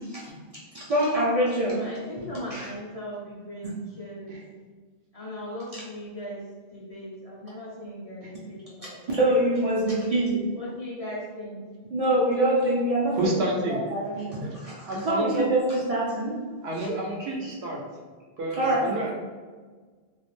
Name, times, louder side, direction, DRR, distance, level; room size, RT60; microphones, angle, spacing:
voice 1, 0.7-1.8 2.2-2.3 2.5-2.7 8.8-10.4 11.9-13.3 13.7-16.3 17.2-17.3 18.6-18.9, right 1 dB, 50° right, -6 dB, 0.4 m, -25 dB
voice 2, 1.6-4.3 5.1-6.4 6.7-9.2 10.5-11.6, left 1 dB, 45° left, -6 dB, 0.5 m, -38 dB
voice 3, 13.1-13.8 14.4-14.5 14.9-15.5 16.6-17.8 18.4-19.1, right 2 dB, 80° right, -1 dB, 0.8 m, -29 dB
2.3 x 2.0 x 3.1 m, 1.5 s
omnidirectional pair, 1.0 m